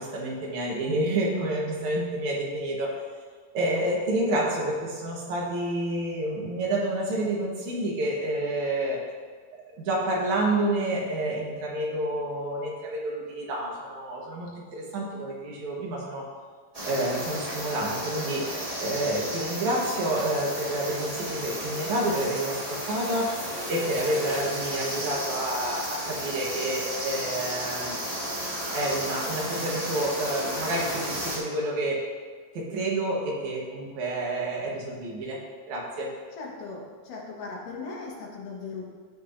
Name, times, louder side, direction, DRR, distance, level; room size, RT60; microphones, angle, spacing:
voice 1, 0.0-3.0 3.5-9.0 9.5-16.3 16.8-18.5 18.8-28.0 28.7-32.0 32.5-35.4 35.7-36.1, right 1 dB, 70° right, -2 dB, 2.7 m, -29 dB
sound 1, 16.7-31.4, right 1 dB, 20° right, 1.1 m, -33 dB
voice 2, 36.4-38.8, left 4 dB, 85° left, -2 dB, 3.2 m, -38 dB
16.0 x 6.2 x 2.7 m, 1.5 s
omnidirectional pair, 3.7 m